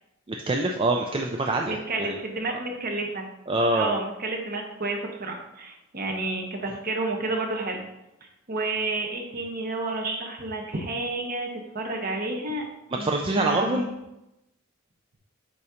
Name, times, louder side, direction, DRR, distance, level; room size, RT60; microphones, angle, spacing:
voice 1, 0.3-2.2 3.5-4.0 13.0-13.9, right 2 dB, 25° right, 2 dB, 0.4 m, -25 dB
voice 2, 1.7-3.3 3.7-7.8 8.5-12.6 12.9-13.1 13.4-13.9, right 2 dB, 45° right, 1 dB, 1.2 m, -30 dB
8.3 x 2.8 x 5.0 m, 0.92 s
head